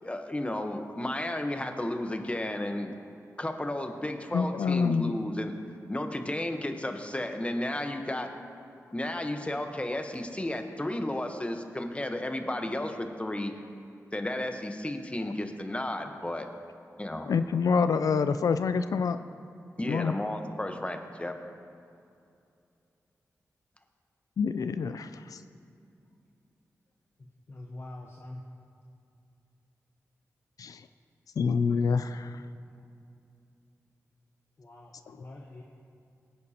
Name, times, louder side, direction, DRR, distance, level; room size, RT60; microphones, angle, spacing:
voice 1, 0.0-2.9 3.4-5.5 5.9-8.3 8.9-13.5 14.1-16.5 17.0-17.3 19.8-21.4, left 1 dB, 20° left, 6 dB, 1.0 m, -33 dB
voice 2, 4.3-5.1 17.3-19.2 19.9-20.1 24.4-25.4 30.6-30.8 31.4-32.4, left 5 dB, 75° left, 11 dB, 0.3 m, -27 dB
voice 3, 27.2-28.4 32.7-32.8 34.6-35.6, left 2 dB, 45° left, -1 dB, 1.0 m, -45 dB
17.0 x 9.3 x 2.9 m, 2.6 s
cardioid pair, 45°, 6 cm